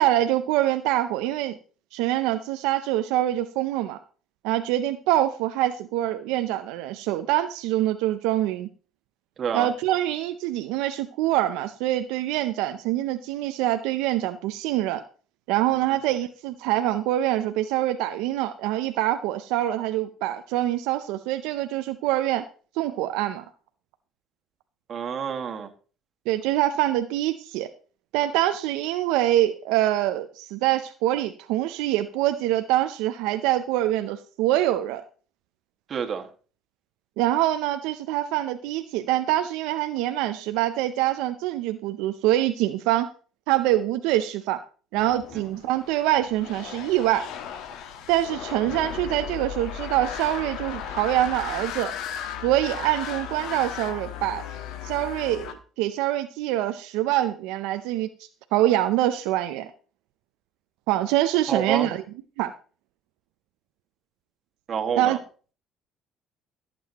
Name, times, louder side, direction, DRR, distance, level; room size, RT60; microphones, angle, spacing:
voice 1, 0.0-1.6 1.9-4.0 4.4-8.7 9.5-15.0 15.5-22.4 22.8-23.4 26.3-27.7 28.1-35.0 37.2-43.1 43.5-44.6 44.9-47.3 48.1-51.9 52.4-54.4 54.8-58.1 58.5-59.7 60.9-62.0 62.4-62.5 65.0-65.2, right 14 dB, 90° right, 9 dB, 0.5 m, -25 dB
voice 2, 24.9-25.7 35.9-36.3 61.5-61.9 64.7-65.2, right 7 dB, 45° right, 4 dB, 1.8 m, -28 dB
sound 1, 44.9-55.5, left 9 dB, 75° left, 1.3 m, -36 dB
15.5 x 7.7 x 2.9 m, 0.39 s
cardioid pair, 95°, 0 cm